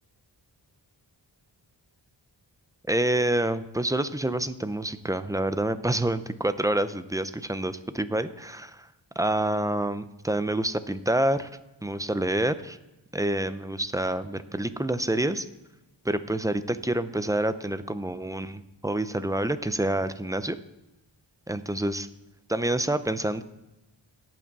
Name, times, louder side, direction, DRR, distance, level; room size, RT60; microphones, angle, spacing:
voice 1, 2.9-8.9 9.2-11.5 11.8-12.8 13.1-15.5 16.0-20.6 21.5-22.1 22.5-23.4, right 1 dB, 10° right, 12 dB, 0.5 m, -27 dB
17.5 x 6.1 x 4.1 m, 0.97 s
wide cardioid pair, 85°, 46 cm